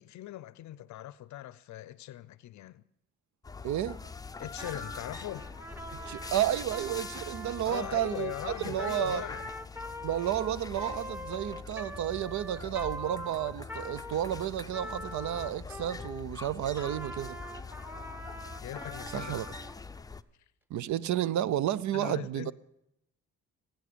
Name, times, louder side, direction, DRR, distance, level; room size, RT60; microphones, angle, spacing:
voice 1, 0.0-2.8 4.4-5.5 7.6-9.4 18.6-19.4 20.4-20.5 21.9-22.5, left 14 dB, 70° left, 0.5 m, -40 dB
sound 1, 3.4-20.2, left 4 dB, 10° left, 0.5 m, -44 dB
voice 2, 3.6-4.0 6.1-9.2 10.0-17.4 19.1-19.5 20.7-22.5, right 12 dB, 70° right, 0.6 m, -32 dB
Trumpet, 4.5-16.3 16.7-19.7, equal, 5° right, 1.2 m, -43 dB
20.5 x 9.1 x 6.9 m
cardioid pair, 90°, 30 cm